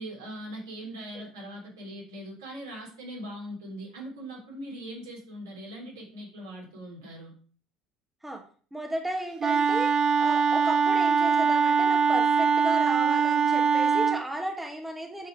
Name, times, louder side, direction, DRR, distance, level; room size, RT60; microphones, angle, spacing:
voice 1, 0.0-7.3, right 1 dB, 75° right, -3 dB, 3.5 m, -41 dB
voice 2, 8.7-15.3, right 1 dB, 5° right, 3 dB, 1.4 m, -34 dB
Wind instrument woodwind instrument, 9.4-14.2, right 6 dB, 30° right, 0.4 m, -23 dB
7.1 x 5.3 x 5.0 m, 0.44 s
figure-of-eight pair, 65°, 2 cm